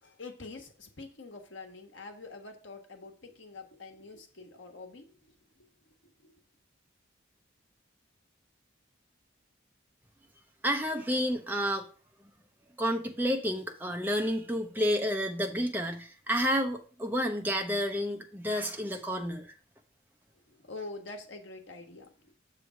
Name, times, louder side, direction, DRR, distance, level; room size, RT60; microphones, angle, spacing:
voice 1, 0.0-5.1 20.5-22.3, left 3 dB, 75° left, 4 dB, 1.2 m, -45 dB
voice 2, 10.6-11.8 12.8-19.5, equal, 10° right, 3 dB, 0.7 m, -30 dB
6.8 x 3.3 x 6.0 m, 0.40 s
head